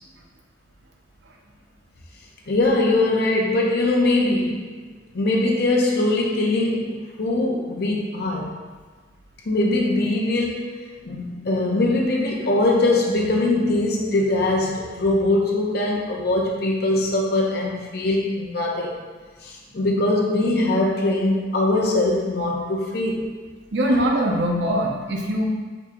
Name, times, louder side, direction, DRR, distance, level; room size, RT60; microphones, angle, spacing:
voice 1, 2.5-4.7 5.1-8.5 9.4-10.7 11.0-18.9 19.4-23.3, left 2 dB, 60° left, -1 dB, 0.7 m, -22 dB
voice 2, 23.7-25.4, equal, 70° right, 0 dB, 0.7 m, -22 dB
4.7 x 2.8 x 3.7 m, 1.4 s
head